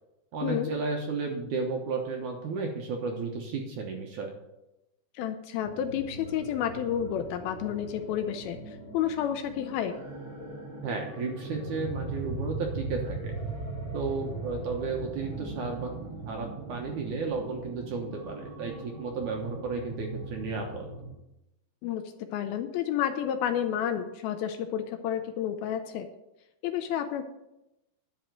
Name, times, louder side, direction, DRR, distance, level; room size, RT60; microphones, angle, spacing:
voice 1, 0.3-4.3 10.8-13.3 13.9-15.9 16.3-20.9, right 4 dB, 65° right, 1 dB, 2.1 m, -33 dB
voice 2, 5.2-9.9 21.8-22.0 22.3-26.1 26.6-27.2, left 9 dB, 80° left, 8 dB, 2.3 m, -30 dB
sound 1, 5.6-21.1, right 3 dB, 25° right, 1.9 m, -39 dB
11.0 x 5.8 x 7.8 m, 0.91 s
omnidirectional pair, 4.7 m